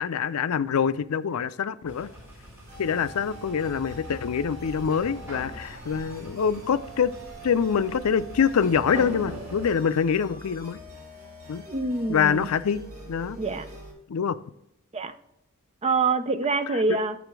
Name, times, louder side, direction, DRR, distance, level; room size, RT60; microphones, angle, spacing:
voice 1, 0.0-2.1 2.8-7.1 7.4-10.8 11.5-11.6 12.1-13.4 14.1-14.3 16.7-16.8, left 7 dB, 80° left, 15 dB, 0.4 m, -25 dB
sound 1, 1.8-9.7, equal, 10° right, 3.1 m, -42 dB
sound 2, 2.7-13.9, right 1 dB, 45° right, 3.0 m, -44 dB
voice 2, 11.7-12.5 13.4-13.7 14.9-15.1 15.8-17.2, right 4 dB, 30° right, 10 dB, 0.5 m, -25 dB
7.1 x 6.5 x 4.6 m, 0.80 s
head